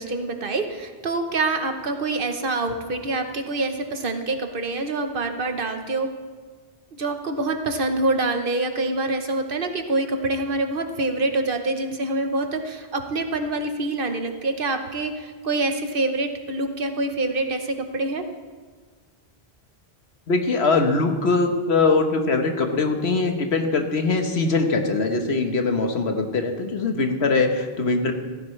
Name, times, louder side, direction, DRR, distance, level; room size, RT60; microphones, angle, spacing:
voice 1, 0.0-6.1 6.9-18.2, right 2 dB, 60° right, 6 dB, 1.2 m, -26 dB
voice 2, 20.3-28.1, left 3 dB, 85° left, 5 dB, 1.4 m, -22 dB
16.0 x 14.5 x 3.2 m, 1.4 s
omnidirectional pair, 1.1 m